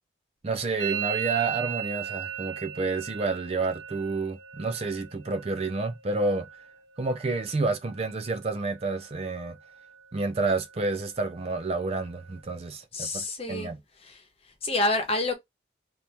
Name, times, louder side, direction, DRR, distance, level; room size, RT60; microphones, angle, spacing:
voice 1, 0.4-6.5 7.0-9.6 10.1-13.8, right 3 dB, 30° right, 0.4 m, -29 dB
Musical instrument, 0.8-8.4 8.7-9.3 9.5-10.1 10.4-12.4, right 12 dB, 65° right, 0.8 m, -39 dB
voice 2, 12.9-15.3, left 2 dB, 30° left, 1.0 m, -29 dB
2.9 x 2.8 x 3.3 m
head